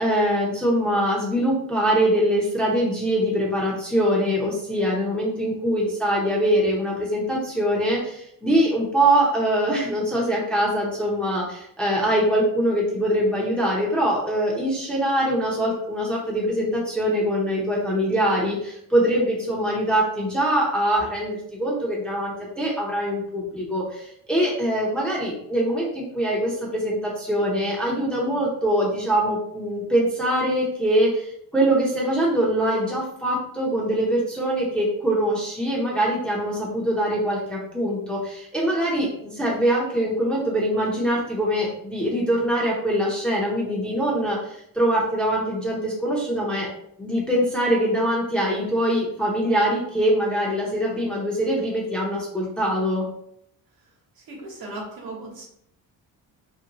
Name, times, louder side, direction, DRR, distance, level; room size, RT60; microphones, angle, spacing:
voice 1, 0.0-46.7 47.0-53.1, right 1 dB, ahead, -5 dB, 0.7 m, -23 dB
voice 2, 54.2-55.5, right 2 dB, 65° right, -1 dB, 1.2 m, -37 dB
3.0 x 2.7 x 2.9 m, 0.72 s
cardioid pair, 125°, 38 cm